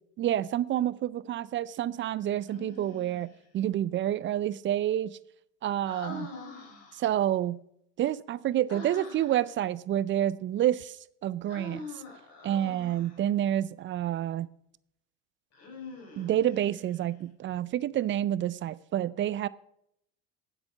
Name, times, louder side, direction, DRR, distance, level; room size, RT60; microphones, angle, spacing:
voice 1, 0.2-5.2 5.6-6.3 6.9-7.6 8.0-12.0 12.4-14.5 16.2-19.5, right 12 dB, 35° right, 0.4 m, -29 dB
Human voice, 2.5-3.4 5.8-7.2 8.7-9.5 11.5-13.3 15.5-17.1, left 3 dB, 45° left, 4.5 m, -44 dB
9.6 x 7.9 x 5.3 m
hypercardioid pair, 80°, 34 cm